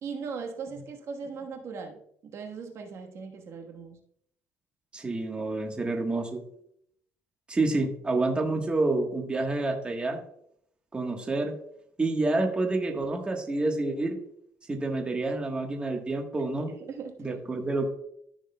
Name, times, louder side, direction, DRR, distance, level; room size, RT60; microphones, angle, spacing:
voice 1, 0.0-4.0 16.7-17.4, right 5 dB, 55° right, 3 dB, 1.2 m, -39 dB
voice 2, 4.9-6.4 7.5-10.2 10.9-11.6 12.0-14.2 14.7-16.7 17.2-17.9, right 2 dB, 20° right, 2 dB, 1.2 m, -28 dB
13.5 x 6.3 x 2.2 m, 0.70 s
cardioid pair, 125°, 6 cm